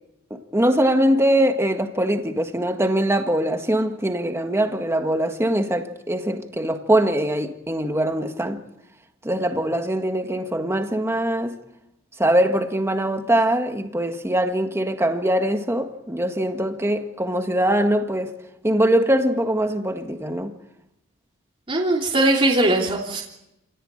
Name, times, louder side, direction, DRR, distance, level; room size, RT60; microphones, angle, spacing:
voice 1, 0.3-8.6 9.2-11.6 12.2-18.3 18.6-20.5, right 1 dB, 15° right, 1.7 m, -22 dB
voice 2, 21.7-23.2, right 1 dB, 30° right, 3.2 m, -20 dB
28.0 x 17.5 x 9.0 m
head